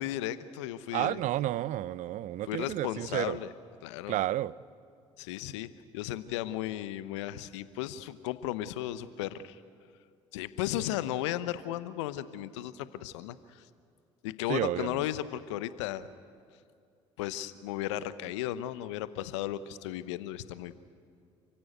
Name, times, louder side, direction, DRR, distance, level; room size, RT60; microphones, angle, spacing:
voice 1, 0.0-1.2 2.4-3.5 3.8-4.2 5.2-9.6 10.3-13.7 14.2-16.1 17.2-20.8, left 13 dB, 80° left, 15 dB, 0.9 m, -35 dB
voice 2, 0.9-3.4 4.1-4.5 14.5-15.0, right 14 dB, 55° right, 21 dB, 0.6 m, -31 dB
28.5 x 16.0 x 9.4 m, 2.3 s
hypercardioid pair, 55°, 15 cm